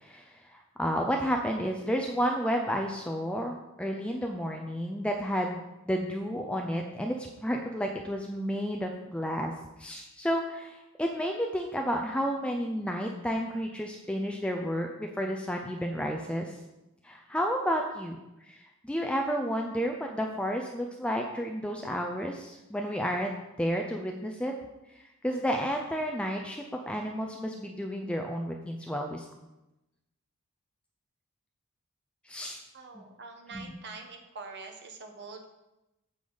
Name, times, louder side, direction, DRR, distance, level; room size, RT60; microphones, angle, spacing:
voice 1, 0.0-9.5 9.8-16.5 17.0-18.2 18.5-23.3 23.6-24.5 25.2-29.2 32.3-32.6 33.0-33.1 33.5-33.7, equal, 5° left, 1 dB, 0.5 m, -31 dB
voice 2, 32.7-35.4, right 4 dB, 50° right, 4 dB, 1.1 m, -44 dB
8.5 x 6.9 x 4.0 m, 0.96 s
head